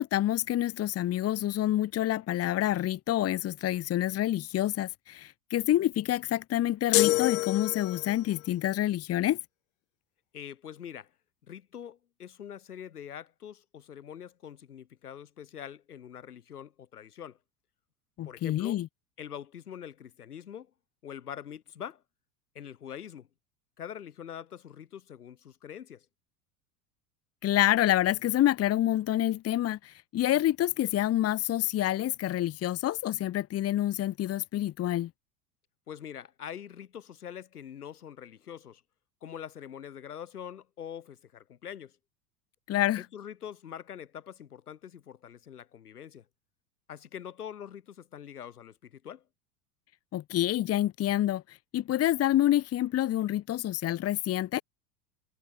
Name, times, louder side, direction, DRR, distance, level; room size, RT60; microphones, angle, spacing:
voice 1, 0.0-9.4 18.2-18.9 27.4-35.1 42.7-43.0 50.1-54.6, left 13 dB, 30° left, 1.4 m, -27 dB
sound 1, 6.9-8.3, left 21 dB, 60° left, 2.1 m, -26 dB
voice 2, 10.3-11.1 11.4-17.4 18.2-18.8 19.2-20.7 21.0-22.0 22.5-23.3 23.8-26.1 35.9-38.8 39.2-42.0 43.0-46.3 46.9-49.2, left 9 dB, 75° left, 4.2 m, -44 dB
figure-of-eight pair, 80°, 45 cm